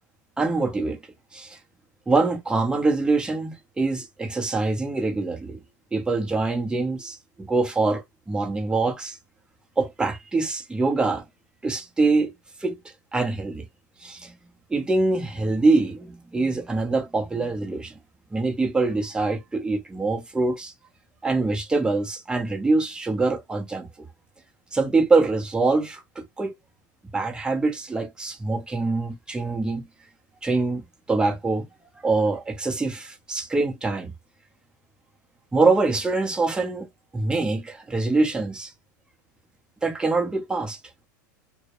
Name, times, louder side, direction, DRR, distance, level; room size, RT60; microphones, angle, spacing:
voice 1, 0.4-1.0 1.3-1.6 2.1-5.6 5.9-9.2 9.8-11.2 11.6-12.3 12.6-12.8 13.1-13.7 14.0-14.3 14.7-17.9 18.3-20.7 21.2-23.9 24.7-26.5 27.1-29.9 30.4-31.6 32.0-34.1 35.5-36.9 37.1-38.7 39.8-40.8, right 3 dB, 10° right, 0.7 m, -24 dB
2.1 x 2.0 x 2.9 m
supercardioid pair, 120°, 10 cm